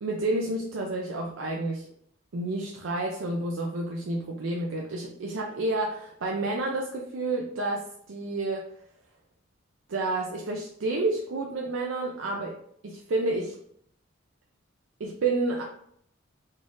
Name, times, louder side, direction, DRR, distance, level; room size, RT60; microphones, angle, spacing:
voice 1, 0.0-1.9 2.3-8.7 9.9-12.6 12.8-13.6 15.0-15.6, right 2 dB, 85° right, -1 dB, 0.5 m, -30 dB
4.0 x 2.4 x 3.7 m, 0.67 s
head